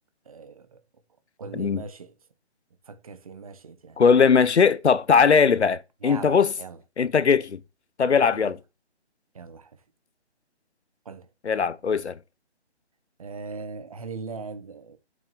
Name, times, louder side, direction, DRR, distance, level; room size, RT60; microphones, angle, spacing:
voice 1, 0.2-0.8 1.4-2.1 2.9-4.0 6.0-6.8 8.3-8.5 9.3-9.7 11.0-11.3 13.2-15.0, right 4 dB, 30° right, 1.3 m, -39 dB
voice 2, 4.0-6.5 7.0-7.6 8.0-8.6 11.4-12.2, left 6 dB, 80° left, 1.0 m, -20 dB
7.7 x 6.1 x 7.6 m
hypercardioid pair, 165°, 33 cm